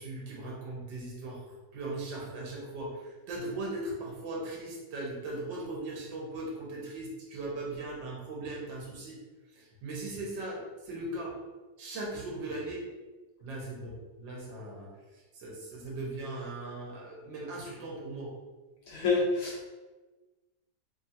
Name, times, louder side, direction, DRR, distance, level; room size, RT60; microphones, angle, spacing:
voice 1, 0.0-9.2 9.5-11.3 11.8-12.8 13.4-18.3, right 2 dB, 90° right, -3 dB, 1.5 m, -39 dB
voice 2, 18.9-19.7, left 3 dB, 70° left, -2 dB, 1.0 m, -28 dB
3.3 x 2.4 x 4.1 m, 1.2 s
omnidirectional pair, 2.0 m